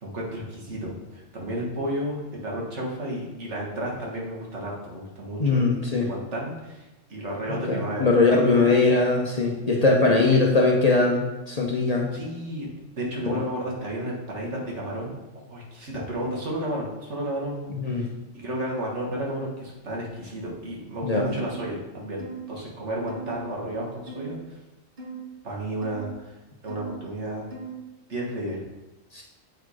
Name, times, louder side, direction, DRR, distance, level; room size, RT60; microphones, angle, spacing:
voice 1, 0.0-8.7 10.0-10.4 12.1-12.7 13.0-15.2 15.5-18.1 18.3-22.2 22.5-24.4 25.4-26.3 26.6-27.4 28.1-28.6, right 1 dB, 70° right, -2 dB, 1.9 m, -32 dB
voice 2, 5.4-6.1 7.5-12.1 13.3-13.4 17.8-18.1 21.0-21.3 29.1-29.2, left 3 dB, 35° left, -1 dB, 0.9 m, -21 dB
sound 1, 21.4-21.6 22.2-22.5 23.1-23.3 24.1-24.4 25.0-25.2 25.8-26.1 26.7-27.0 27.5-27.8, right 4 dB, 40° right, 1.2 m, -38 dB
7.7 x 4.2 x 4.8 m, 1.1 s
omnidirectional pair, 1.2 m